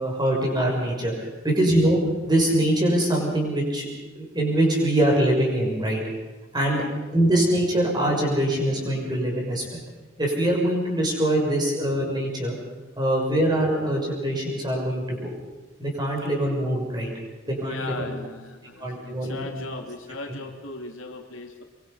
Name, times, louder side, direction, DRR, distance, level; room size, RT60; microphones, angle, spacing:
voice 1, 0.0-3.9 4.2-6.0 6.5-6.8 7.1-9.8 10.2-12.6 13.0-15.3 15.8-17.1 17.5-18.1 18.8-19.6 20.3-20.4, right 1 dB, 20° right, -1 dB, 6.2 m, -23 dB
voice 2, 6.6-6.9 17.4-21.6, left 3 dB, 80° left, 3 dB, 2.8 m, -38 dB
24.5 x 23.5 x 5.7 m, 1.2 s
head